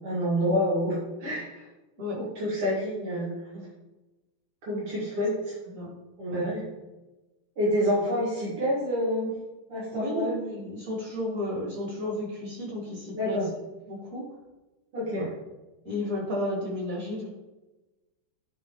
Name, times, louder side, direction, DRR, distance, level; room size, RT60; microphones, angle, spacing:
voice 1, 0.0-1.6 2.2-3.7 4.6-5.6 6.2-6.7 7.6-9.3 9.7-10.3 13.1-13.5 14.9-15.3, equal, 85° right, -8 dB, 2.8 m, -28 dB
voice 2, 9.9-13.5 13.9-14.2 15.2-15.3 15.8-17.3, left 1 dB, 40° right, -4 dB, 2.6 m, -33 dB
10.5 x 4.0 x 3.1 m, 1.1 s
omnidirectional pair, 2.4 m